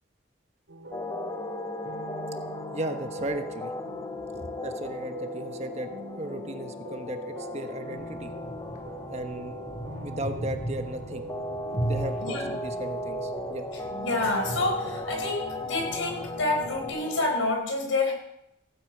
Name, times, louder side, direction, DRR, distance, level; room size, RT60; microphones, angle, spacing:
sound 1, 0.7-17.3, right 1 dB, 80° right, 2.8 m, -42 dB
sound 2, 0.9-17.5, left 1 dB, 15° left, 0.6 m, -37 dB
voice 1, 2.7-3.7 4.3-8.3 9.1-9.6 10.0-11.2 11.8-13.7, right 1 dB, 35° right, 6 dB, 1.2 m, -36 dB
sound 3, 8.0-16.9, right 1 dB, 40° left, 3.1 m, -38 dB
voice 2, 12.2-12.5 14.0-18.1, left 2 dB, 85° left, 2 dB, 5.0 m, -28 dB
16.5 x 8.8 x 8.6 m, 0.82 s
head